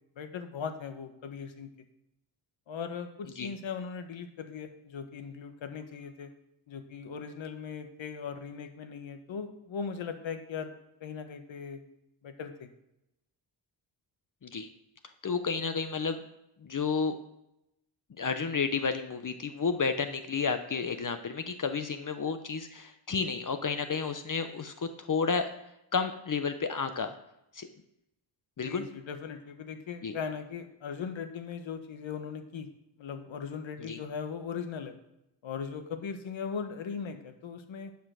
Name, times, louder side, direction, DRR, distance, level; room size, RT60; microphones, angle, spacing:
voice 1, 0.2-1.7 2.7-6.3 6.7-10.7 11.0-11.8 12.2-12.7 28.6-32.7 33.0-34.9 35.4-37.9, left 6 dB, 75° left, 8 dB, 1.3 m, -39 dB
voice 2, 15.2-16.2 16.6-17.2 18.2-25.5 25.9-27.1 27.5-27.7 28.6-28.8 30.0-30.1 33.8-34.0, left 5 dB, 40° left, 9 dB, 0.9 m, -31 dB
10.0 x 5.8 x 6.3 m, 0.84 s
cardioid pair, 65°, 47 cm